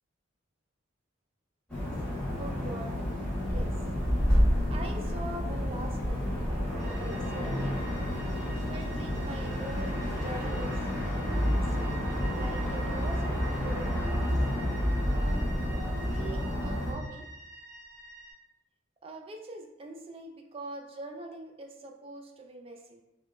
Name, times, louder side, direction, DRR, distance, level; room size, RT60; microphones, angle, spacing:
sound 1, 1.7-16.9, equal, 5° left, 1.1 m, -29 dB
voice 1, 2.4-2.9 3.5-3.8 4.7-6.3 6.7-7.8 8.7-10.8 11.2-11.7 12.3-14.0 15.1-15.5 15.9-17.3 19.0-23.0, right 2 dB, 25° right, 3 dB, 0.3 m, -43 dB
sound 2, 6.8-18.3, right 2 dB, 40° left, 1.3 m, -48 dB
5.4 x 2.2 x 2.3 m, 0.95 s
head